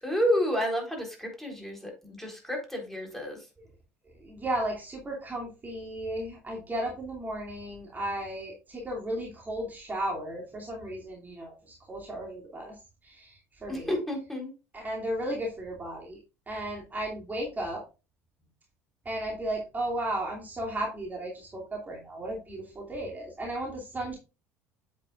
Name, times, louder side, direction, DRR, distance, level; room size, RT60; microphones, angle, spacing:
voice 1, 0.0-3.5 13.7-14.5, equal, 5° left, 1 dB, 3.8 m, -30 dB
voice 2, 4.2-12.8 13.0-13.9 14.7-16.2 16.5-17.8 19.0-24.2, right 1 dB, 20° right, -2 dB, 2.6 m, -34 dB
8.4 x 8.0 x 2.5 m, 0.30 s
figure-of-eight pair, 65°, 8 cm